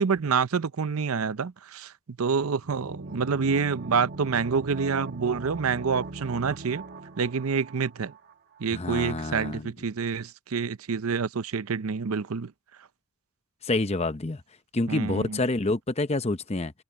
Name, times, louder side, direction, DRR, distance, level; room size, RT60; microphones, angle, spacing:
voice 1, 0.0-1.9 2.2-6.8 7.2-8.1 8.6-12.5 14.9-15.4, right 5 dB, 75° right, 0.6 m, -27 dB
sound 1, 2.6-8.3 8.6-8.7, right 3 dB, 45° right, 1.3 m, -40 dB
voice 2, 8.7-9.7 13.6-14.4 14.7-16.7, left 2 dB, 30° left, 0.8 m, -27 dB
open air
head